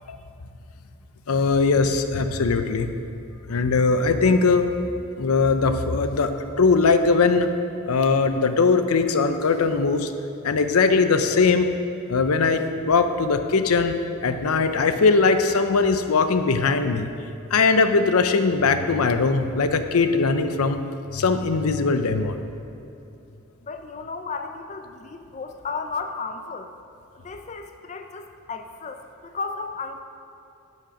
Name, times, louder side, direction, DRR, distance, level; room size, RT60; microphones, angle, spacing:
voice 1, 1.3-2.9 3.5-4.7 5.2-7.5 7.9-10.1 10.4-11.8 12.1-14.0 14.2-17.1 17.5-20.8 21.1-22.4, left 4 dB, 85° left, 9 dB, 0.6 m, -20 dB
voice 2, 23.6-26.7 27.2-30.0, left 4 dB, 30° left, 6 dB, 0.4 m, -34 dB
9.8 x 6.4 x 5.8 m, 2.7 s
head